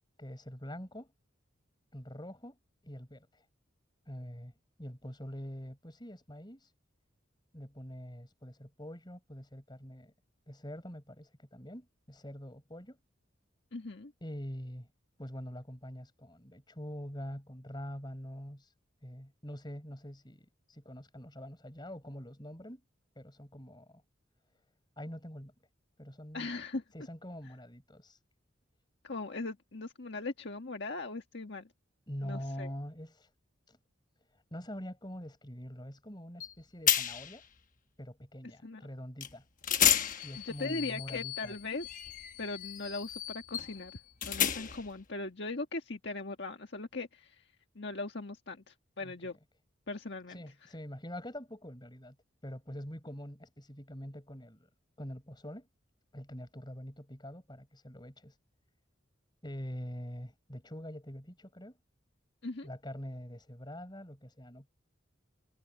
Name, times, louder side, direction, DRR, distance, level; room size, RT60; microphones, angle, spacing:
voice 1, 0.2-1.1 1.9-2.6 2.8-3.3 4.1-4.5 4.8-6.7 7.5-10.1 10.5-13.0 14.2-14.9 15.2-18.7 19.0-22.8 23.2-24.0 25.0-25.5 26.0-26.6 26.9-28.2 32.1-33.3 33.7-33.8 34.5-37.4 38.0-39.4 40.2-41.5 49.0-49.1 50.3-52.2 52.4-54.7 55.0-55.7 56.1-58.3 59.4-61.8 62.6-64.7, equal, 20° left, 5.7 m, -44 dB
voice 2, 13.7-14.1 26.3-26.8 29.0-31.7 32.2-32.7 38.6-38.8 40.4-42.0 42.4-43.9 44.2-47.3 47.7-49.4 49.9-50.4 62.4-62.7, left 3 dB, 60° left, 1.7 m, -39 dB
sound 1, 36.4-36.5 36.9-37.4 39.2-39.3 39.6-44.9, left 10 dB, 40° left, 1.2 m, -32 dB
head